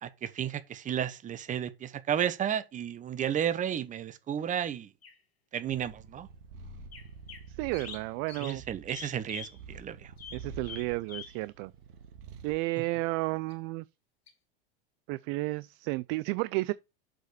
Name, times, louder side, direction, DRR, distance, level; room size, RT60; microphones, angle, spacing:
voice 1, 0.0-4.9 5.5-6.3 8.4-10.1, right 9 dB, 25° right, 1.0 m, -32 dB
sound 1, 5.0-5.2 6.9-7.5 7.7-9.6 10.2-11.4 13.5-13.6 14.3-14.4, left 6 dB, 85° left, 2.3 m, -45 dB
Purr, 5.7-12.6, right 4 dB, 65° right, 2.0 m, -48 dB
voice 2, 7.5-8.6 10.3-11.7 12.4-13.9 15.1-16.7, right 22 dB, 45° right, 0.4 m, -32 dB
7.6 x 5.2 x 4.2 m
hypercardioid pair, 95°, 30 cm